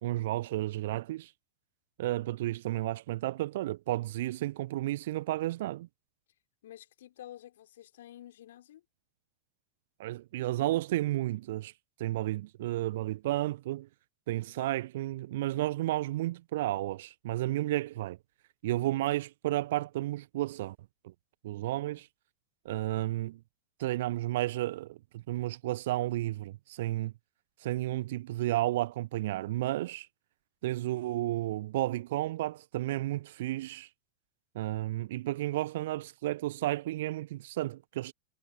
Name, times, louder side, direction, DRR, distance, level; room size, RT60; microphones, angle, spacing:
voice 1, 0.0-1.3 2.0-5.9 10.0-11.7 12.0-13.9 14.3-18.2 18.6-20.8 21.0-21.1 21.4-22.1 22.6-23.4 23.8-27.1 27.6-30.1 30.6-33.9 34.5-38.1, right 16 dB, 55° right, 1.3 m, -32 dB
voice 2, 6.6-8.8 21.9-22.0, left 12 dB, 60° left, 5.7 m, -50 dB
figure-of-eight pair, 90°, 0 cm